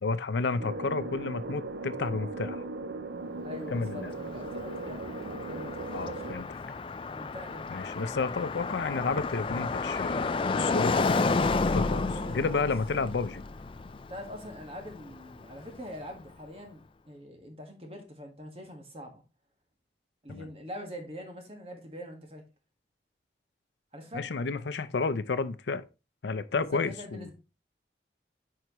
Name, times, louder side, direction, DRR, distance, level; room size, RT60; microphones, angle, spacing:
voice 1, 0.0-2.7 3.7-4.1 5.9-6.4 7.7-12.0 12.3-13.4 20.3-20.5 24.1-25.8 26.2-27.3, left 4 dB, 80° left, 0.5 m, -31 dB
sound 1, 0.6-6.4, right 3 dB, 80° right, 0.5 m, -38 dB
voice 2, 3.4-6.5 7.1-7.8 11.8-12.6 14.1-19.2 20.2-22.4 23.9-24.2 26.6-27.3, equal, 30° right, 1.6 m, -44 dB
Car passing by, 3.7-15.8, left 3 dB, 30° left, 0.3 m, -31 dB
9.3 x 4.7 x 3.0 m
head